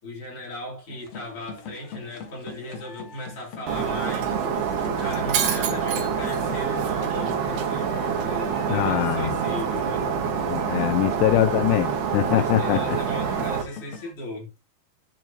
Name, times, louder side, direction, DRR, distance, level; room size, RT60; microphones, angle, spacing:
voice 1, 0.0-10.1 12.3-14.5, left 1 dB, 35° left, 4.6 m, -37 dB
sound 1, 0.9-14.1, left 6 dB, 50° left, 2.1 m, -42 dB
Shatter, 3.7-13.6, right 7 dB, 70° right, 3.7 m, -26 dB
voice 2, 8.7-9.4 10.5-13.0, left 14 dB, 85° left, 2.8 m, -23 dB
10.5 x 9.1 x 3.1 m
omnidirectional pair, 4.8 m